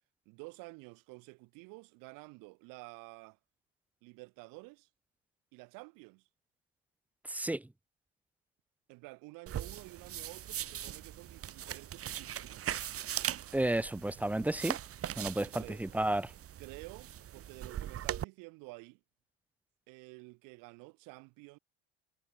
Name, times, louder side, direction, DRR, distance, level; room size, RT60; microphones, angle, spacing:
voice 1, 0.3-3.4 4.0-4.9 5.5-6.3 8.9-12.7 15.4-15.8 16.6-19.0 19.9-21.6, right 27 dB, 70° right, 5.1 m, -51 dB
voice 2, 7.3-7.7 13.5-14.8 15.2-16.3, right 1 dB, 5° right, 0.5 m, -32 dB
sound 1, 9.5-18.2, right 11 dB, 40° right, 1.5 m, -40 dB
hypercardioid pair, 80°, 35 cm